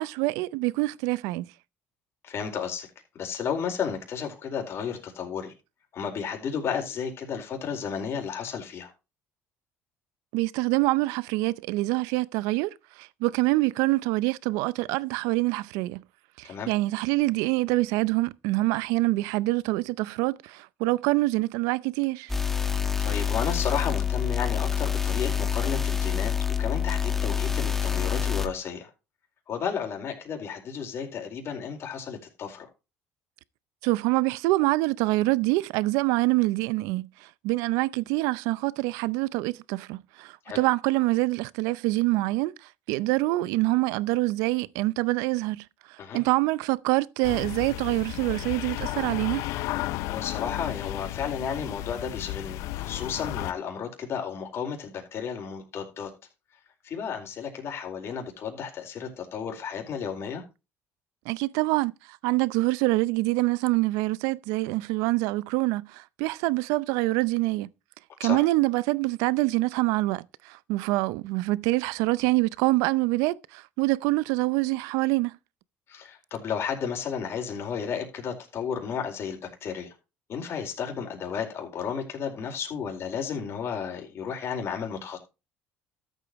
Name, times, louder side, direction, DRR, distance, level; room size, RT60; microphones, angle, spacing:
voice 1, 0.0-1.5 10.3-16.0 16.4-22.3 33.8-42.5 42.9-45.6 46.1-49.4 61.3-67.7 68.2-75.4, right 21 dB, 80° right, 0.5 m, -25 dB
voice 2, 2.2-2.9 3.1-5.5 5.9-8.9 16.4-16.7 23.0-26.3 26.6-28.9 29.5-32.7 40.4-40.6 46.0-46.2 50.1-56.1 56.8-60.4 68.2-68.4 75.9-79.9 80.3-85.2, left 7 dB, 50° left, 4.4 m, -33 dB
sound 1, 22.3-28.5, left 8 dB, 5° left, 2.0 m, -27 dB
sound 2, 47.2-53.5, left 15 dB, 75° left, 0.7 m, -33 dB
13.5 x 8.2 x 3.1 m
supercardioid pair, 80°, 5 cm